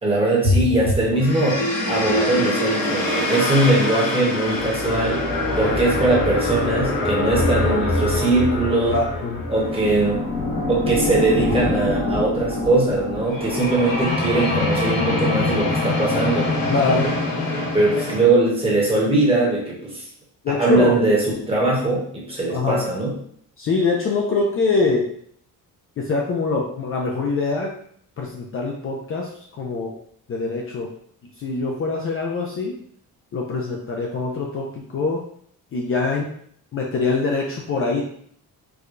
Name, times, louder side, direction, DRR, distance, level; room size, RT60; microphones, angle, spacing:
voice 1, 0.0-5.2 5.6-9.0 9.5-10.2 10.7-16.5 17.7-20.0 20.5-23.1, right 2 dB, 15° right, -4 dB, 1.1 m, -20 dB
sound 1, 1.2-18.2, left 2 dB, 70° left, 1.1 m, -24 dB
voice 2, 8.9-9.5 16.7-17.1 17.9-18.0 20.4-21.0 22.5-22.9 23.6-25.1 26.0-27.7 28.2-29.9 30.3-30.9 31.4-32.7 33.3-35.2 35.7-36.3 36.7-38.0, left 3 dB, 40° left, -1 dB, 0.4 m, -23 dB
4.7 x 2.2 x 2.5 m, 0.64 s
cardioid pair, 155°, 35 cm